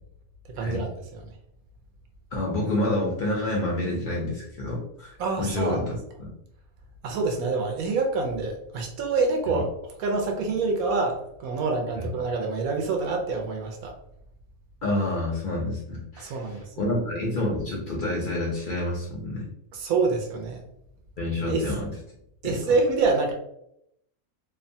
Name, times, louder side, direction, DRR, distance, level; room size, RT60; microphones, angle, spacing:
voice 1, 0.5-1.2 5.2-5.9 7.0-9.7 10.0-14.0 16.2-16.6 19.7-20.7 21.5-21.7 22.4-23.3, right 4 dB, 75° right, 2 dB, 1.0 m, -26 dB
voice 2, 2.3-6.3 9.5-9.6 12.0-12.1 14.8-19.5 21.2-21.9 22.4-22.6, left 1 dB, 70° left, -3 dB, 0.4 m, -28 dB
2.8 x 2.1 x 2.6 m, 0.77 s
omnidirectional pair, 1.6 m